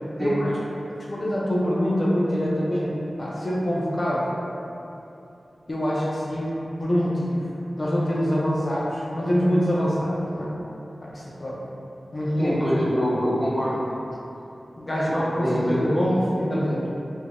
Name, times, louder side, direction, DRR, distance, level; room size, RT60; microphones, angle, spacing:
voice 1, 0.2-0.5 1.0-2.9 3.2-4.3 5.7-7.4 7.8-10.5 11.0-11.6 12.1-12.5 14.8-16.9, equal, 40° left, -5 dB, 0.4 m, -25 dB
voice 2, 12.4-13.8 15.0-16.0, equal, 45° right, -12 dB, 1.5 m, -24 dB
3.3 x 2.5 x 2.2 m, 2.9 s
wide cardioid pair, 85°, 0 cm